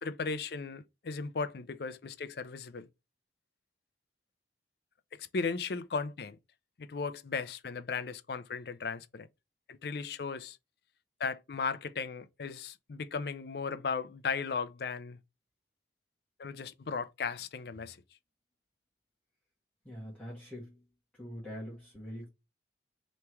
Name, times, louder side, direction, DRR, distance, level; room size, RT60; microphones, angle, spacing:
voice 1, 0.0-2.9 5.2-6.4 6.8-9.3 9.7-10.6 11.2-15.2 16.4-18.0, left 5 dB, 60° left, 0.4 m, -36 dB
voice 2, 19.8-20.8 21.1-22.3, equal, 5° left, 1.5 m, -44 dB
3.4 x 3.2 x 4.4 m
head